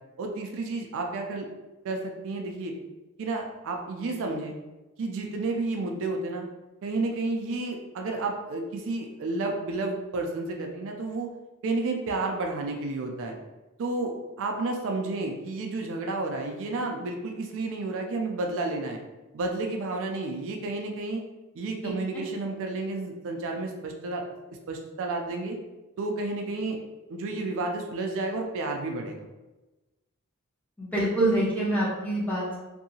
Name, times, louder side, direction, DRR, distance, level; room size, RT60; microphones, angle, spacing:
voice 1, 0.2-1.5 1.8-2.7 3.2-4.5 5.0-6.5 6.8-11.3 11.6-13.3 13.8-19.0 19.3-21.2 21.5-24.2 24.7-25.6 26.0-26.8 27.1-29.2, right 3 dB, 65° right, 2 dB, 0.4 m, -31 dB
voice 2, 30.8-32.6, right 1 dB, 5° left, -7 dB, 0.9 m, -26 dB
2.7 x 2.6 x 2.7 m, 1.1 s
head